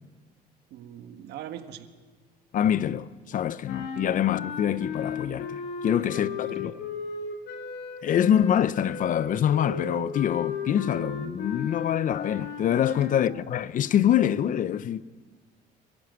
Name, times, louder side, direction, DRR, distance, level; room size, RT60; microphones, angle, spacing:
voice 1, 0.7-1.9 5.9-6.7 13.0-13.3, right 10 dB, 80° right, 1.6 m, -42 dB
voice 2, 2.5-6.8 8.0-15.0, left 10 dB, 50° left, 0.7 m, -25 dB
sound 1, 3.7-13.3, left 5 dB, 80° left, 2.6 m, -35 dB
23.5 x 14.5 x 9.5 m
cardioid pair, 110°, 17 cm